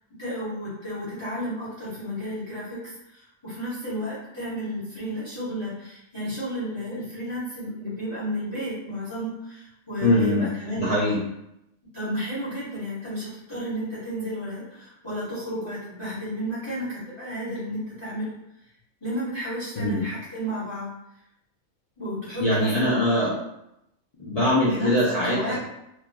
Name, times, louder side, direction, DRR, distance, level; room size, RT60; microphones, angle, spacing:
voice 1, 0.2-10.9 11.9-18.3 19.0-20.9 22.0-23.0 24.6-24.9 25.2-25.6, equal, 20° left, -10 dB, 0.9 m, -32 dB
voice 2, 10.0-10.5 10.7-11.2 19.8-20.0 22.4-23.3 24.2-25.6, left 1 dB, 65° left, -8 dB, 0.3 m, -22 dB
2.9 x 2.3 x 2.2 m, 0.84 s
omnidirectional pair, 1.4 m